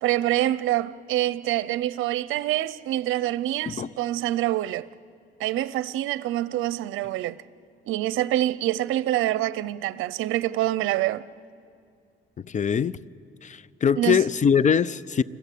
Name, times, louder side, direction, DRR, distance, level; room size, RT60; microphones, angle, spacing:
voice 1, 0.0-4.9 5.4-7.4 7.9-11.2 14.0-14.2, right 14 dB, 90° right, 0.6 m, -26 dB
voice 2, 12.4-13.0 13.4-15.2, left 7 dB, 40° left, 0.6 m, -22 dB
29.5 x 21.5 x 8.4 m
cardioid pair, 90°, 20 cm